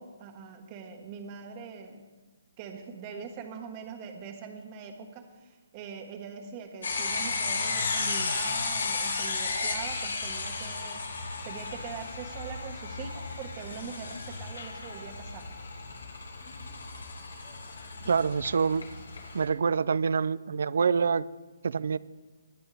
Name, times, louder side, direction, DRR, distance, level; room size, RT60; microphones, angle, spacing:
voice 1, 0.0-2.0 2.6-11.1 11.4-15.4 18.0-18.1, right 6 dB, 25° right, 5 dB, 1.5 m, -42 dB
sound 1, 6.8-19.4, left 4 dB, 80° left, 3.2 m, -34 dB
voice 2, 18.1-18.9 19.3-21.3 21.6-22.0, right 5 dB, 65° right, 20 dB, 0.4 m, -26 dB
19.5 x 10.0 x 3.5 m, 1.2 s
hypercardioid pair, 155°, 0 cm